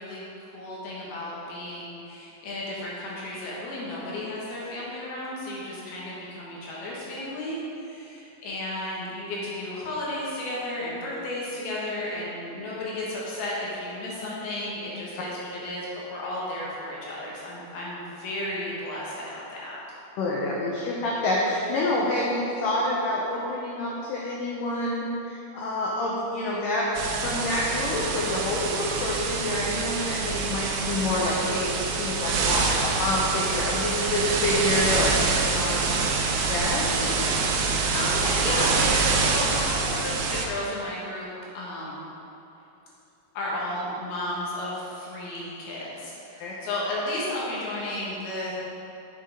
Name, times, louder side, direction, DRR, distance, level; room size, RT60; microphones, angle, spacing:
voice 1, 0.0-19.8 37.9-41.3 41.5-42.1 43.3-48.5, left 1 dB, 65° left, -6 dB, 3.2 m, -33 dB
voice 2, 20.2-26.9 27.2-35.9 36.5-37.4 46.4-46.5, left 1 dB, 85° left, -4 dB, 1.9 m, -28 dB
sound 1, 26.9-40.5, right 4 dB, 85° right, 3.0 m, -26 dB
8.1 x 6.8 x 5.1 m, 2.9 s
omnidirectional pair, 5.1 m